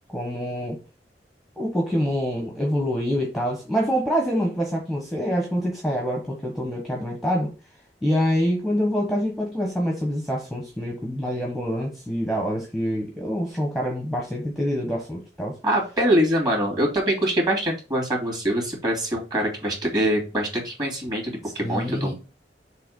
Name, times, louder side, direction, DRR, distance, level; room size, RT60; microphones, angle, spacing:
voice 1, 0.1-0.8 1.6-7.5 8.0-15.5 21.6-22.1, equal, ahead, 1.2 m, -26 dB
voice 2, 15.6-22.1, right 1 dB, 25° right, 2.8 m, -24 dB
6.8 x 3.0 x 5.3 m
head